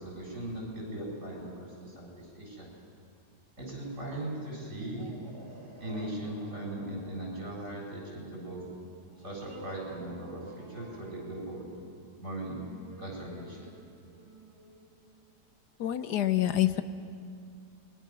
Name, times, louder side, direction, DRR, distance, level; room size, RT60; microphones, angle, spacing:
voice 1, 0.0-2.7 3.6-5.1 5.8-8.6 9.2-11.6 12.2-12.6 13.0-13.7, right 1 dB, 40° right, -3 dB, 8.1 m, -39 dB
sound 1, 4.7-15.9, right 3 dB, 15° right, 1.7 m, -52 dB
voice 2, 15.8-16.8, left 13 dB, 75° left, 11 dB, 1.3 m, -26 dB
27.5 x 22.5 x 6.2 m, 2.3 s
omnidirectional pair, 1.8 m